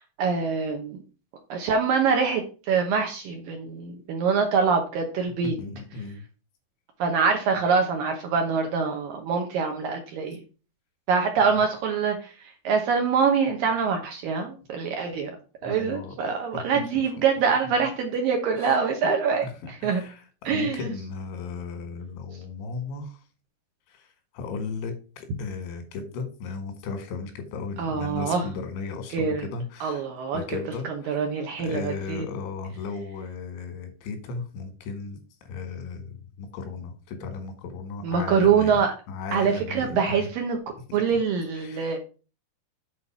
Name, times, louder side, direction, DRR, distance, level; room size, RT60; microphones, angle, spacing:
voice 1, 0.2-1.0 1.5-5.5 7.0-10.4 11.1-12.3 12.6-15.3 15.6-19.4 19.8-20.0 20.5-20.9 27.8-28.5 29.1-29.5 29.8-30.6 31.1-32.2 38.0-38.9 39.3-40.6 40.9-42.0, right 5 dB, 70° right, 3 dB, 2.2 m, -24 dB
voice 2, 5.4-6.2 11.4-11.6 15.6-16.2 16.5-17.0 18.5-19.2 19.4-23.2 23.9-30.0 30.3-31.2 31.6-38.8 39.1-40.3 40.9-41.0 41.6-42.0, left 4 dB, 90° left, 7 dB, 4.0 m, -36 dB
8.2 x 4.6 x 6.0 m, 0.35 s
omnidirectional pair, 5.2 m